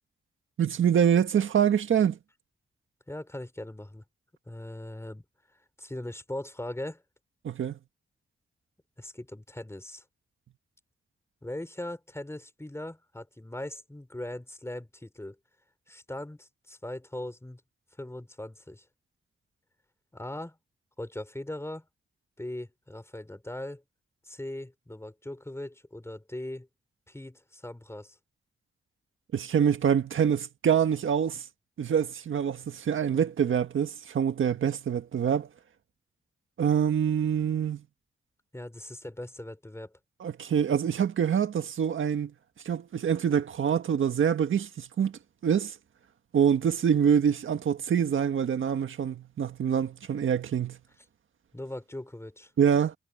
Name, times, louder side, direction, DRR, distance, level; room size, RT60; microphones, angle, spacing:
voice 1, 0.6-2.2 7.4-7.7 29.3-31.4 31.8-35.5 36.6-37.8 40.2-42.3 42.6-45.1 45.4-45.7 46.3-50.8 52.6-52.9, right 8 dB, 75° right, 1.7 m, -25 dB
voice 2, 3.1-4.0 4.5-5.2 5.8-7.0 9.0-10.0 11.4-15.4 15.9-17.6 18.0-18.8 20.1-20.6 21.0-21.9 22.4-23.8 24.2-26.7 27.1-28.2 38.5-39.9 51.5-52.5, left 1 dB, 15° left, 4.7 m, -39 dB
cardioid pair, 60°, 21 cm